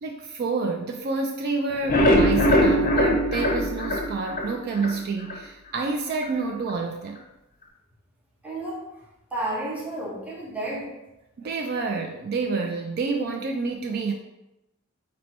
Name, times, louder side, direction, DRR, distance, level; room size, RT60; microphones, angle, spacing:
voice 1, 0.0-7.2 11.4-14.1, right 4 dB, 45° right, 2 dB, 0.3 m, -28 dB
sound 1, 1.7-4.9 5.3-5.4 5.8-5.9 6.2-6.3, equal, 40° left, 0.6 m, -21 dB
voice 2, 8.4-8.9 9.3-10.9, right 1 dB, 5° right, -3 dB, 0.7 m, -31 dB
4.2 x 2.2 x 4.2 m, 0.94 s
head